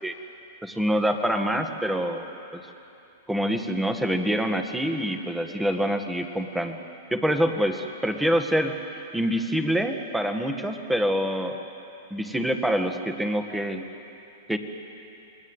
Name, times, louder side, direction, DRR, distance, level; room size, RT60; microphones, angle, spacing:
voice 1, 0.6-2.3 2.5-2.6 3.3-6.8 7.1-8.7 9.1-11.6 12.1-13.9 14.5-14.6, equal, 5° right, 5 dB, 1.9 m, -26 dB
28.5 x 20.5 x 8.3 m, 2.8 s
hypercardioid pair, 125°, 0 cm